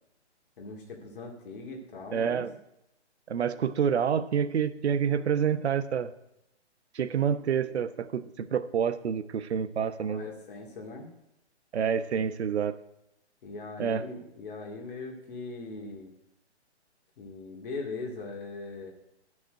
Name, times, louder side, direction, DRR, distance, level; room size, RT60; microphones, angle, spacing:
voice 1, 0.6-2.5 10.0-11.1 13.4-16.1 17.2-18.9, left 3 dB, 50° left, 0 dB, 2.3 m, -40 dB
voice 2, 2.1-2.5 3.3-6.1 6.9-10.3 11.7-12.8 13.8-14.0, right 7 dB, 70° right, 12 dB, 1.0 m, -28 dB
11.5 x 6.1 x 8.9 m, 0.84 s
hypercardioid pair, 160°, 34 cm